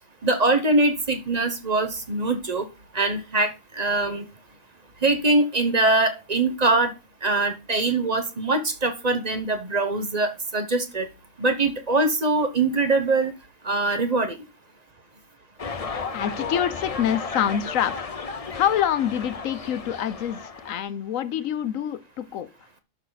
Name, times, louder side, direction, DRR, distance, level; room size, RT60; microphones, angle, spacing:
voice 1, 0.2-2.7 2.9-4.2 5.0-6.9 7.2-11.1 11.4-13.3 13.6-14.4, right 2 dB, 35° right, 1.1 m, -23 dB
sound 1, 15.6-20.8, left 4 dB, 35° left, 0.8 m, -34 dB
voice 2, 16.1-18.1 18.5-22.5, left 10 dB, 75° left, 1.1 m, -26 dB
11.5 x 5.9 x 4.0 m
omnidirectional pair, 1.4 m